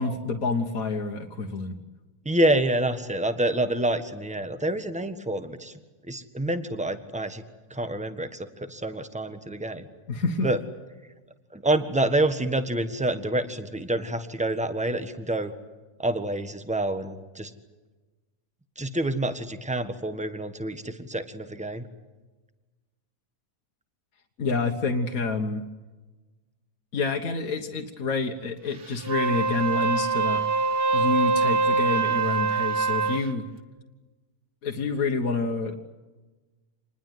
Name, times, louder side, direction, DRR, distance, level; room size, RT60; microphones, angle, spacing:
voice 1, 0.0-1.8 10.1-10.5 24.4-25.7 26.9-30.4 30.9-33.5 34.6-35.8, left 4 dB, 65° left, 2 dB, 1.8 m, -28 dB
voice 2, 2.2-5.7 6.1-7.4 7.7-9.9 10.4-10.6 11.5-15.5 16.0-17.5 18.8-21.9, right 1 dB, 5° right, 9 dB, 1.4 m, -27 dB
Wind instrument woodwind instrument, 29.0-33.3, right 4 dB, 40° right, 1.4 m, -24 dB
27.0 x 20.5 x 9.4 m, 1.2 s
omnidirectional pair, 1.6 m